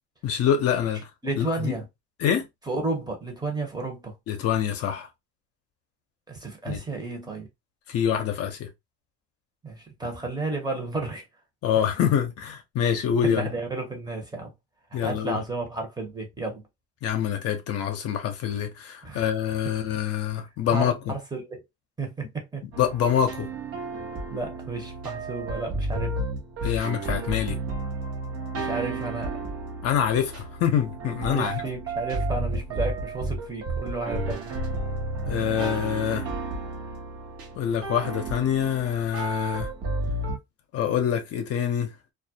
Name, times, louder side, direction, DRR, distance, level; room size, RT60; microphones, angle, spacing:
voice 1, 0.2-1.1 1.4-1.7 2.2-2.4 4.3-5.1 6.7-6.8 7.9-8.7 11.6-13.5 14.9-15.4 17.0-21.1 22.8-23.5 26.6-27.6 29.8-31.5 35.3-36.3 37.6-39.7 40.7-41.9, left 9 dB, 55° left, 0.6 m, -25 dB
voice 2, 1.2-1.9 2.7-4.1 6.3-7.5 9.6-11.2 13.2-14.5 14.9-16.6 19.0-19.2 20.7-21.6 22.0-22.6 24.3-26.2 28.5-29.4 31.3-34.5, right 3 dB, 15° right, 0.8 m, -32 dB
sound 1, 22.7-40.4, right 2 dB, 55° right, 0.8 m, -32 dB
2.3 x 2.0 x 2.6 m
cardioid pair, 105°, 29 cm